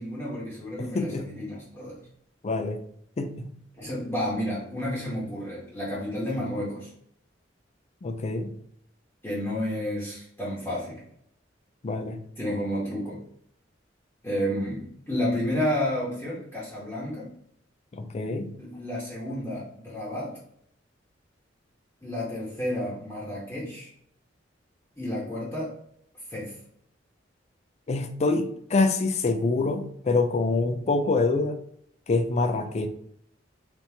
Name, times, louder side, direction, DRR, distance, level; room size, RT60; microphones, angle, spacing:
voice 1, 0.0-2.0 3.8-6.9 9.2-11.0 12.4-13.2 14.2-17.3 18.6-20.4 22.0-23.9 25.0-25.7 26.3-26.5, equal, 15° left, -8 dB, 1.0 m, -31 dB
voice 2, 0.8-1.3 2.4-2.8 3.2-3.5 8.0-8.5 11.8-12.3 17.9-18.5 27.9-31.6 32.1-32.9, left 3 dB, 35° left, 8 dB, 0.4 m, -26 dB
3.5 x 2.8 x 2.8 m, 0.67 s
head